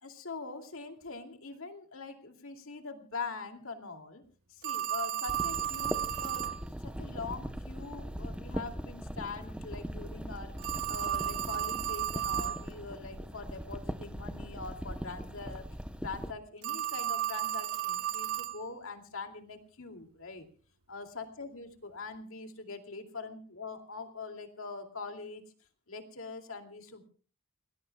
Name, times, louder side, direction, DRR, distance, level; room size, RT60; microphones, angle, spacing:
voice 1, 0.0-4.2 4.5-10.5 10.9-15.6 16.0-20.5 20.9-25.4 25.9-27.0, left 4 dB, 65° left, 4 dB, 2.5 m, -43 dB
Telephone, 4.6-6.6 10.6-12.6 16.6-18.6, right 12 dB, 75° right, 1.1 m, -33 dB
sound 1, 5.3-16.3, equal, 5° right, 0.8 m, -40 dB
29.5 x 19.5 x 2.3 m, 0.38 s
head